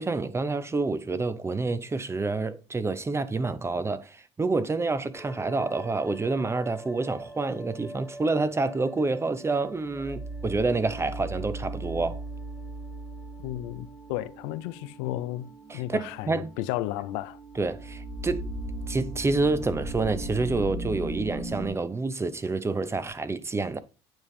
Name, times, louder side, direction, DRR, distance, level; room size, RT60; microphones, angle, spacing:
voice 1, 0.0-12.2 15.7-16.5 17.5-18.5 18.9-23.8, right 3 dB, 20° right, 0.6 m, -28 dB
sound 1, 5.1-21.7, right 1 dB, ahead, 1.8 m, -39 dB
voice 2, 13.4-17.4, left 15 dB, 80° left, 0.4 m, -33 dB
8.9 x 3.5 x 3.2 m
hypercardioid pair, 70°, 13 cm